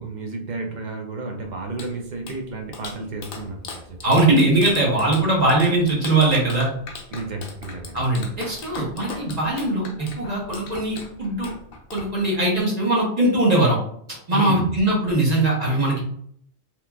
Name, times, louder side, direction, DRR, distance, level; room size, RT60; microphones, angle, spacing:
voice 1, 0.0-4.2 7.1-8.1 14.3-14.7, right 2 dB, 60° right, 2 dB, 0.5 m, -32 dB
Clapping, 1.4-12.6, left 4 dB, 60° left, 0.7 m, -40 dB
voice 2, 4.0-6.7 7.9-9.9 10.2-11.5 11.9-13.8 14.1-16.0, right 2 dB, 40° right, -4 dB, 0.8 m, -20 dB
2.9 x 2.4 x 2.2 m, 0.66 s
omnidirectional pair, 1.2 m